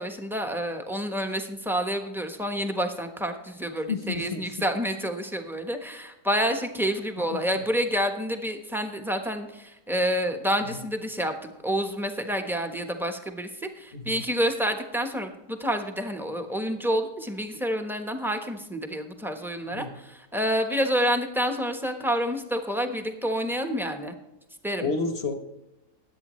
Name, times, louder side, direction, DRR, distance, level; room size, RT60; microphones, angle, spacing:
voice 1, 0.0-24.1 24.6-24.9, equal, ahead, 5 dB, 0.9 m, -28 dB
voice 2, 3.9-4.5 7.3-7.4 13.9-14.2 19.7-19.9 24.8-25.3, left 4 dB, 45° left, 7 dB, 1.1 m, -30 dB
20.5 x 8.5 x 3.2 m, 0.98 s
omnidirectional pair, 1.8 m